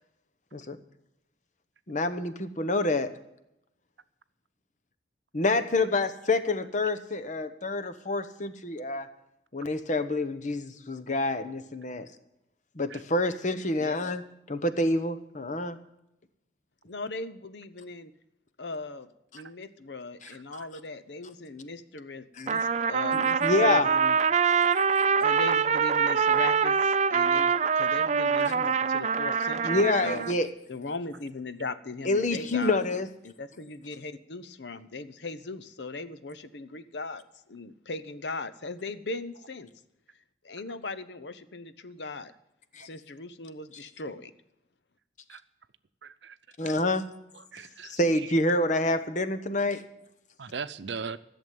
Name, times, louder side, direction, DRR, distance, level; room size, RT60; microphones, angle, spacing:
voice 1, 1.9-3.1 5.3-9.1 9.5-12.1 12.7-14.2 14.5-15.8 20.2-20.3 22.4-22.5 23.1-23.9 29.6-30.5 32.1-33.1 42.7-42.9 46.6-47.0 47.8-49.8, left 2 dB, 45° left, 11 dB, 1.0 m, -27 dB
voice 2, 16.9-18.1 18.6-23.4 23.6-24.2 25.2-30.3 30.7-32.8 33.2-37.2 37.5-39.7 40.4-42.3 42.8-44.3, left 3 dB, 75° left, 13 dB, 0.9 m, -39 dB
Trumpet, 22.5-30.3, right 6 dB, 40° right, 0.4 m, -24 dB
voice 3, 46.0-46.4 46.6-46.8 47.5-47.9 50.4-51.2, right 5 dB, 85° right, 13 dB, 0.7 m, -38 dB
14.5 x 7.2 x 9.3 m, 0.85 s
head